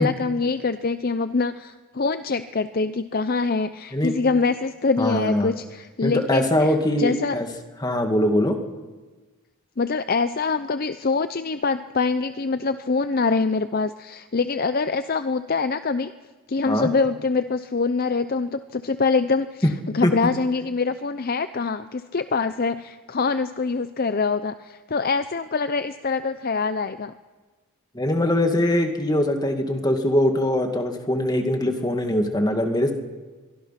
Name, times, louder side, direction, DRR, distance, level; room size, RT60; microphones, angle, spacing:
voice 1, 0.0-7.4 9.8-16.1 16.5-27.1, left 4 dB, 40° left, 11 dB, 0.6 m, -24 dB
voice 2, 5.0-5.5 6.0-7.5 7.8-8.6 16.7-16.9 19.6-19.7 20.0-20.1 27.9-32.9, left 1 dB, 20° left, 4 dB, 2.2 m, -22 dB
23.5 x 23.0 x 5.9 m, 1.3 s
head